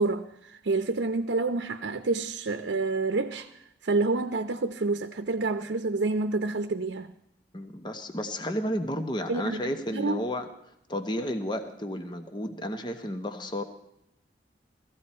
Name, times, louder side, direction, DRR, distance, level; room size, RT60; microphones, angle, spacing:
voice 1, 0.0-3.5 3.8-7.1 9.3-9.6 9.9-10.2, right 3 dB, 85° right, 0.7 m, -28 dB
voice 2, 7.5-13.6, equal, 25° left, 0.9 m, -32 dB
18.0 x 14.5 x 4.3 m
head